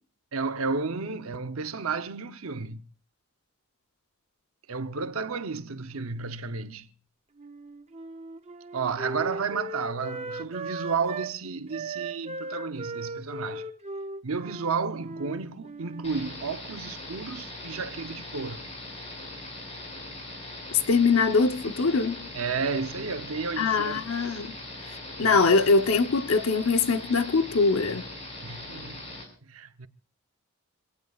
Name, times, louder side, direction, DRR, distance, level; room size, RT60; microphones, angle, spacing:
voice 1, 0.3-2.8 4.7-6.9 8.7-13.7 14.2-18.6 22.3-24.0 25.2-25.4 28.4-29.0 29.5-29.9, right 5 dB, 65° right, 0.8 m, -32 dB
Wind instrument woodwind instrument, 7.4-11.3 11.7-16.1, right 2 dB, 30° right, 0.7 m, -37 dB
sound 1, 16.0-29.2, left 2 dB, 30° left, 6.0 m, -41 dB
voice 2, 20.9-22.2 23.6-24.5 25.2-28.0, left 4 dB, 70° left, 0.9 m, -22 dB
27.0 x 17.5 x 2.4 m
head